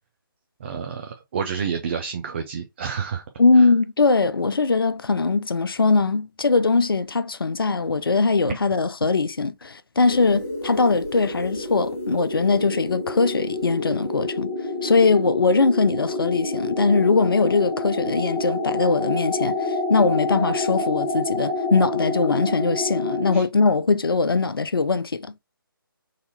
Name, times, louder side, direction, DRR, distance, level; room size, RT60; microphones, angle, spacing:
voice 1, 0.6-3.2 3.6-3.7 23.3-23.4, right 6 dB, 30° right, 0.4 m, -29 dB
voice 2, 3.4-14.5 14.8-25.3, left 4 dB, 75° left, 0.5 m, -21 dB
sound 1, 10.0-23.4, left 2 dB, 45° left, 1.9 m, -28 dB
4.0 x 2.7 x 2.7 m
figure-of-eight pair, 145°, 12 cm